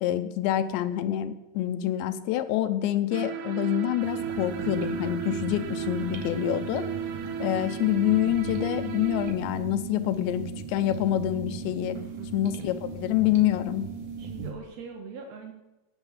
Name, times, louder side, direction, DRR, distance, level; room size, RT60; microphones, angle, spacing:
voice 1, 0.0-6.9 7.4-12.0 12.3-13.8, left 13 dB, 75° left, 11 dB, 2.9 m, -26 dB
sound 1, 3.1-9.3, right 8 dB, 90° right, 3.9 m, -34 dB
sound 2, 4.0-14.5, right 5 dB, 50° right, 2.9 m, -38 dB
voice 2, 11.9-12.4 14.2-15.5, right 5 dB, 70° right, 2 dB, 1.6 m, -42 dB
18.0 x 9.0 x 7.4 m, 1.0 s
omnidirectional pair, 5.6 m